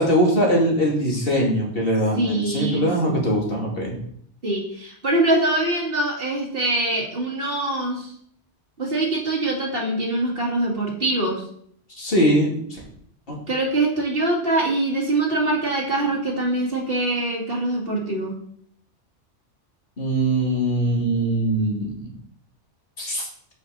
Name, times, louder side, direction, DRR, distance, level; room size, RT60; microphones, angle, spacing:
voice 1, 0.0-3.9 11.9-12.8 13.3-13.4 20.0-22.2 23.0-23.3, equal, 50° left, -3 dB, 2.6 m, -22 dB
voice 2, 2.2-3.3 4.4-8.1 8.8-11.4 13.5-18.3, right 2 dB, 50° right, -2 dB, 2.3 m, -23 dB
8.2 x 7.7 x 4.0 m, 0.65 s
omnidirectional pair, 1.2 m